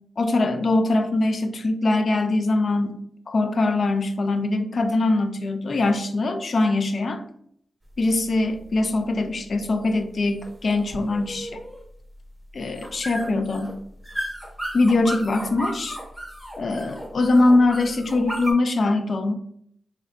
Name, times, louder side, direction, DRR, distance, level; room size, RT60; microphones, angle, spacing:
voice 1, 0.2-3.0 3.3-7.2 8.0-11.6 12.5-13.8 14.7-16.0 16.6-19.3, left 2 dB, 60° left, 7 dB, 0.4 m, -22 dB
sound 1, 7.8-18.5, equal, 5° right, 0.8 m, -35 dB
2.7 x 2.2 x 3.5 m, 0.67 s
supercardioid pair, 40°, 0 cm